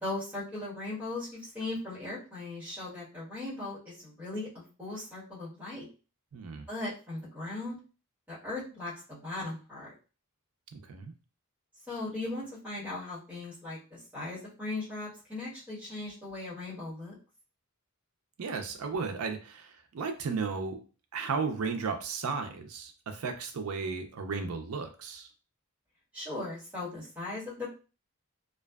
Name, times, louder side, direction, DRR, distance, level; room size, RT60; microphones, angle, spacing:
voice 1, 0.0-5.8 6.7-7.8 8.3-9.9 11.9-17.1 26.1-27.7, left 2 dB, 5° right, -8 dB, 1.2 m, -38 dB
voice 2, 6.3-6.7 10.7-11.1 18.4-20.8 21.1-25.3, right 5 dB, 75° right, 6 dB, 0.5 m, -34 dB
2.5 x 2.2 x 2.2 m, 0.34 s
head